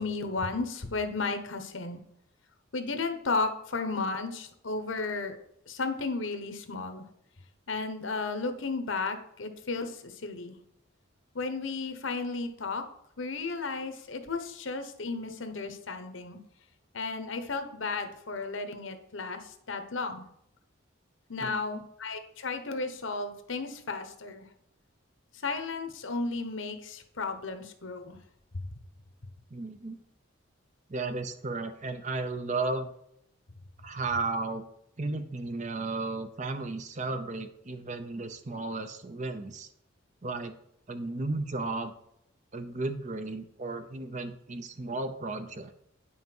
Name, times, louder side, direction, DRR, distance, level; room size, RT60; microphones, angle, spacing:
voice 1, 0.0-2.0 2.7-5.4 5.7-7.1 7.7-10.6 11.3-12.8 13.2-16.4 16.9-20.2 21.3-24.5 25.4-28.2 28.5-28.7, left 3 dB, 70° left, 7 dB, 1.1 m, -34 dB
voice 2, 21.4-21.8 29.5-30.0 30.9-32.9 33.8-34.7 35.0-39.7 40.2-40.6 40.9-41.9 42.5-45.7, right 3 dB, 35° right, 9 dB, 0.7 m, -34 dB
9.4 x 5.8 x 4.5 m, 0.74 s
head